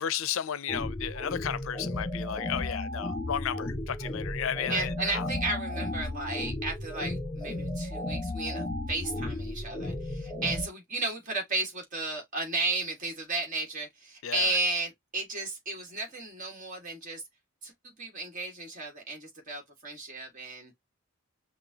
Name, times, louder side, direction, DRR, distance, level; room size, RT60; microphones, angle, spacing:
voice 1, 0.0-5.3 14.2-14.5, left 8 dB, 70° left, 0.5 m, -33 dB
sound 1, 0.7-10.7, left 1 dB, 20° left, 1.2 m, -34 dB
voice 2, 4.7-17.2 17.6-20.7, right 3 dB, 40° right, 1.7 m, -34 dB
5.9 x 2.4 x 2.8 m
head